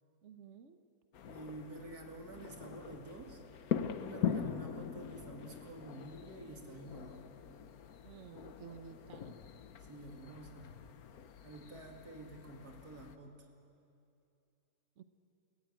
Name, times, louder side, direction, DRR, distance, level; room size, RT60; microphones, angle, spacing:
voice 1, 0.2-0.8 8.0-9.4 15.0-15.1, right 6 dB, 55° right, 8 dB, 1.2 m, -52 dB
sound 1, 1.1-13.2, left 8 dB, 75° left, 1.4 m, -42 dB
voice 2, 1.3-3.4 4.0-7.3 9.8-10.8 11.4-13.5, right 2 dB, 90° right, 2 dB, 3.0 m, -49 dB
30.0 x 15.5 x 9.2 m, 2.7 s
omnidirectional pair, 1.6 m